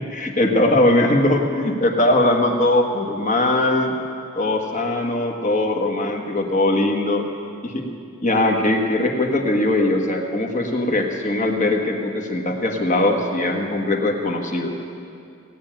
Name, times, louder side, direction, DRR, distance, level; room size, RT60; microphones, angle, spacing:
voice 1, 0.1-3.9 4.4-7.3 7.6-7.9 8.2-14.7, left 1 dB, 35° left, 3 dB, 1.4 m, -20 dB
17.5 x 8.9 x 9.0 m, 2.5 s
head